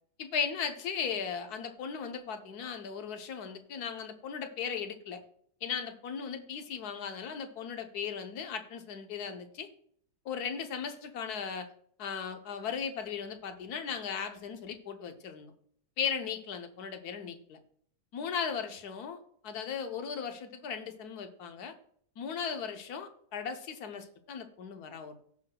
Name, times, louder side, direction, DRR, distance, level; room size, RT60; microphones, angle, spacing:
voice 1, 0.2-5.2 5.6-9.7 10.2-11.7 12.0-15.5 16.0-17.6 18.1-21.7 22.2-25.2, left 6 dB, 90° left, 7 dB, 1.4 m, -37 dB
17.0 x 5.8 x 2.2 m, 0.63 s
omnidirectional pair, 1.6 m